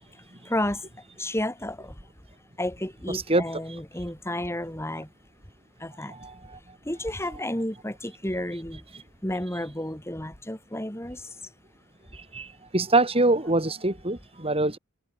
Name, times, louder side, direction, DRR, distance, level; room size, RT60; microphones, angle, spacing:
voice 1, 0.1-0.9 1.2-2.0 2.6-5.1 5.8-6.2 6.8-8.8 9.2-11.3, left 1 dB, 10° left, 4.9 m, -32 dB
voice 2, 3.1-3.4 6.1-6.6 12.1-14.8, right 2 dB, 25° right, 3.8 m, -25 dB
head